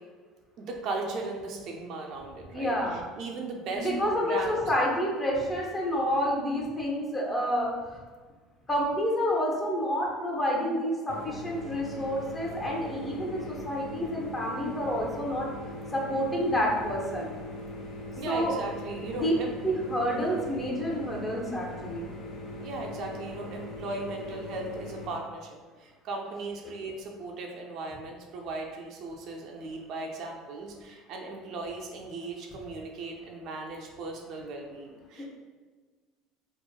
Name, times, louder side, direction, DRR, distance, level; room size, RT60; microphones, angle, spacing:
voice 1, 0.6-4.6 18.2-19.5 22.6-25.5 25.8-35.3, right 3 dB, 60° right, 1 dB, 0.4 m, -37 dB
voice 2, 2.5-3.0 3.7-8.0 8.7-15.5 15.9-17.3 18.3-18.6 19.1-19.3 19.6-22.1, equal, 25° left, -2 dB, 0.7 m, -29 dB
sound 1, 11.1-25.1, left 1 dB, 60° left, 0.5 m, -41 dB
2.9 x 2.0 x 2.3 m, 1.4 s
supercardioid pair, 85°, 0 cm